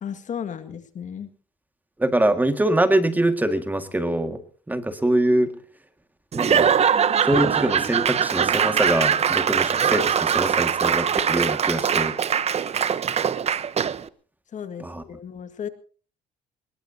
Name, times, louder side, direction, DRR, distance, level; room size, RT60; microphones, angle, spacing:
voice 1, 0.0-1.3 14.5-15.7, left 8 dB, 45° left, 10 dB, 1.9 m, -34 dB
voice 2, 2.0-4.4 4.7-5.5 6.3-6.7 7.2-12.1 14.8-15.0, right 1 dB, 10° right, 8 dB, 1.9 m, -23 dB
Laughter / Applause / Crowd, 6.3-14.1, right 7 dB, 40° right, 0.9 m, -22 dB
23.5 x 21.0 x 2.8 m, 0.39 s
cardioid pair, 110°, 17 cm